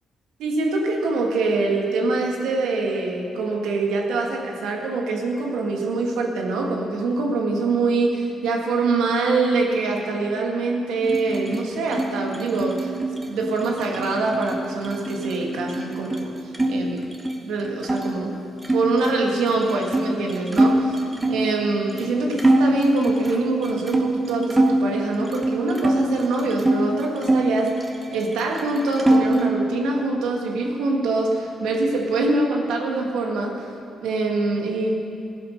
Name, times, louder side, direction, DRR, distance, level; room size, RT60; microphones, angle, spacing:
voice 1, 0.4-12.9 13.2-16.3 16.7-17.1 17.4-18.3 18.7-34.9, right 3 dB, 85° right, 0 dB, 2.0 m, -24 dB
sound 1, 11.0-16.7 17.0-18.1 18.6-21.5 22.0-22.1 22.4-24.8 25.2-26.8 27.2-28.3 28.6-29.5, right 1 dB, 20° right, 1.7 m, -24 dB
14.5 x 10.5 x 6.6 m, 2.5 s
cardioid pair, 75°, 0 cm